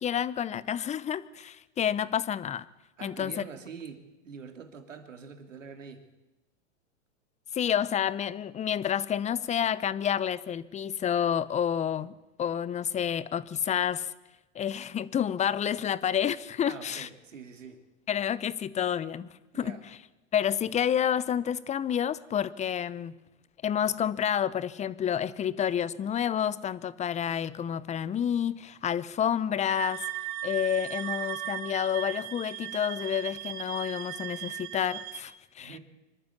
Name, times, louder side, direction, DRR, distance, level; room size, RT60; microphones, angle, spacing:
voice 1, 0.0-2.7 3.0-3.4 7.5-14.1 14.5-17.1 18.1-19.8 20.3-23.2 23.6-30.0 30.4-35.8, left 9 dB, 20° left, 18 dB, 0.8 m, -29 dB
voice 2, 3.0-6.1 16.7-17.8 19.5-19.8 35.6-35.8, right 6 dB, 85° right, 6 dB, 2.9 m, -45 dB
sound 1, 29.7-35.2, right 13 dB, 60° right, 2.3 m, -37 dB
25.5 x 12.0 x 8.5 m, 1.0 s
hypercardioid pair, 110°, 37 cm